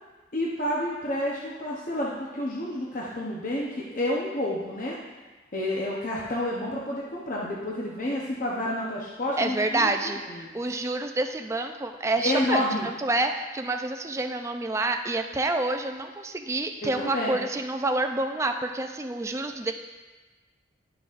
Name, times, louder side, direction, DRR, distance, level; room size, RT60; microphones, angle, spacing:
voice 1, 0.3-5.0 5.5-9.9 10.3-10.7 12.2-12.9 16.8-17.4, left 1 dB, 45° left, -4 dB, 0.8 m, -29 dB
voice 2, 9.4-19.7, right 2 dB, 15° right, 5 dB, 0.4 m, -28 dB
11.0 x 6.0 x 2.5 m, 1.3 s
head